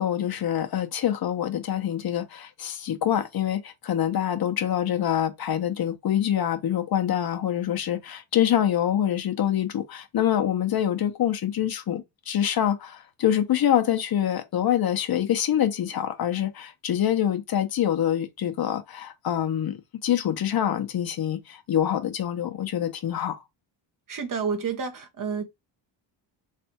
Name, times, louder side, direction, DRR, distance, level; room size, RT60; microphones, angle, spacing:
voice 1, 0.0-23.4, left 10 dB, 55° left, 0.9 m, -25 dB
voice 2, 24.1-25.4, right 6 dB, 45° right, 1.1 m, -29 dB
3.4 x 3.3 x 2.9 m
cardioid pair, 105°, 44 cm